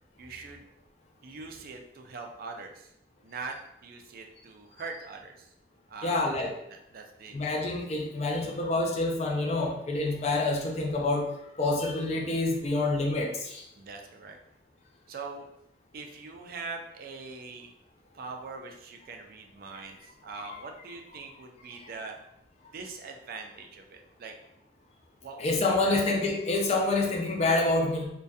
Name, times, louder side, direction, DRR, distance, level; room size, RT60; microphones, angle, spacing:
voice 1, 0.2-0.7 1.2-2.9 3.2-3.6 3.8-5.5 5.9-7.4 8.4-8.6 13.8-14.4 15.1-15.5 15.9-17.7 18.1-22.2 22.7-24.3 25.2-26.0, right 4 dB, 55° right, 3 dB, 0.3 m, -42 dB
voice 2, 6.0-6.5 7.3-13.7 20.4-20.6 21.8-21.9 25.4-28.1, left 2 dB, 40° left, 1 dB, 0.4 m, -27 dB
2.6 x 2.2 x 2.3 m, 0.80 s
head